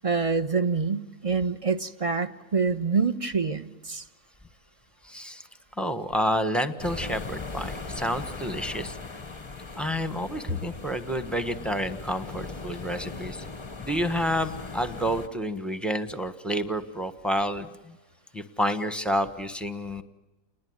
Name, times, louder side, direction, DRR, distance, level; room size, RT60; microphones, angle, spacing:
voice 1, 0.0-4.0, right 4 dB, 25° right, 10 dB, 0.9 m, -26 dB
voice 2, 5.0-5.5 5.8-9.0 9.7-13.4 13.8-18.0 18.3-20.0, equal, ahead, 8 dB, 1.1 m, -29 dB
sound 1, 6.8-15.3, left 4 dB, 25° left, 0.8 m, -39 dB
29.0 x 20.5 x 9.6 m, 1.1 s
omnidirectional pair, 1.7 m